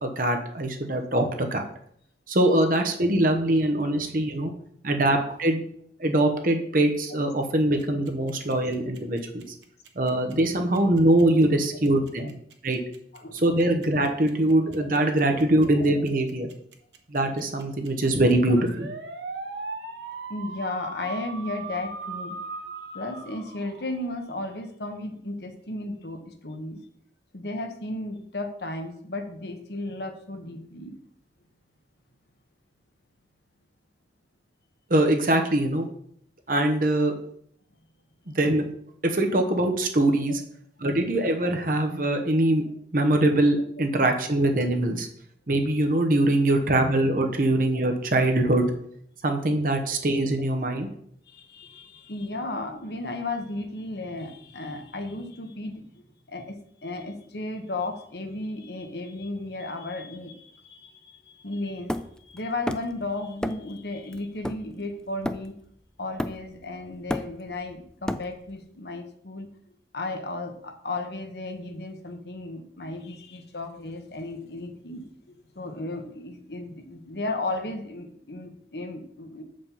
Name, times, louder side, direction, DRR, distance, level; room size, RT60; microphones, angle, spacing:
voice 1, 0.0-1.7 2.3-4.5 4.8-5.6 6.0-9.4 10.0-12.3 12.6-12.8 13.3-16.5 17.1-18.9 34.9-35.9 36.5-37.1 38.3-38.6 39.0-40.4 40.8-42.6 42.9-45.1 45.5-48.7 49.2-50.9, right 1 dB, 50° right, 4 dB, 1.0 m, -23 dB
sound 1, 7.8-24.3, right 3 dB, 85° right, 1.1 m, -39 dB
voice 2, 20.3-22.4 22.9-26.8 27.3-31.0 43.8-43.9 47.7-47.9 51.3-56.0 56.3-65.5 66.0-69.5 69.9-75.1 75.5-79.4, left 2 dB, 70° left, 5 dB, 1.2 m, -34 dB
Hammer, 61.9-63.0 63.4-63.8 64.1-65.7 66.2-66.6 66.9-68.6, left 1 dB, 5° left, 0.3 m, -32 dB
7.3 x 5.2 x 5.5 m, 0.66 s
head